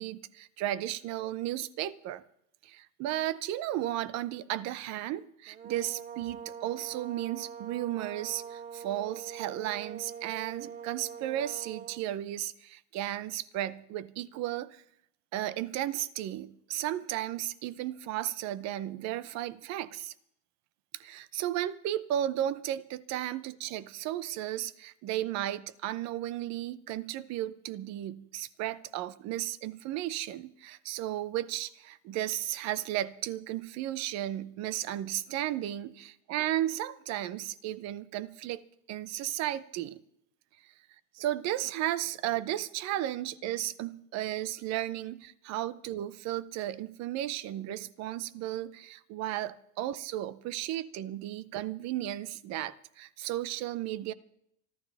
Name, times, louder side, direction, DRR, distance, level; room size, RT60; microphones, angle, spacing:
voice 1, 0.0-2.2 2.6-14.8 15.3-20.1 20.9-40.0 41.1-54.1, right 13 dB, 50° right, 0.8 m, -34 dB
sound 1, 5.5-12.1, right 7 dB, 25° right, 0.5 m, -44 dB
25.5 x 12.5 x 3.5 m
cardioid pair, 155°, 35 cm